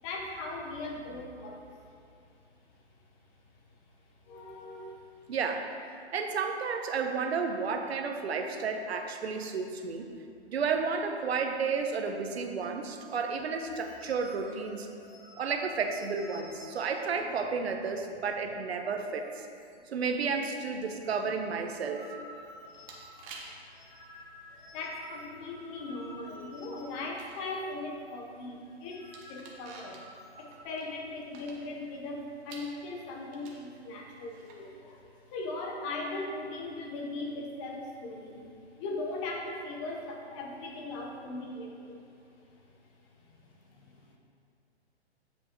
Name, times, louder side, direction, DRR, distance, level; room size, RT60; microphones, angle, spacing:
voice 1, 0.0-1.7 4.3-5.1 24.7-30.0 30.4-38.5 38.8-42.0 43.3-44.2, left 2 dB, 30° left, 0 dB, 1.0 m, -39 dB
voice 2, 5.3-10.1 10.5-14.9 15.4-19.5 19.9-22.1, right 5 dB, 65° right, 5 dB, 0.9 m, -32 dB
sound 1, 12.8-18.8 19.1-19.2 19.5-20.1 20.4-27.7 28.0-28.2 28.6-30.6, left 1 dB, 10° left, 0.5 m, -53 dB
sound 2, 22.3-34.7, right 3 dB, 25° right, 0.9 m, -54 dB
8.2 x 7.4 x 3.0 m, 2.5 s
hypercardioid pair, 135°, 33 cm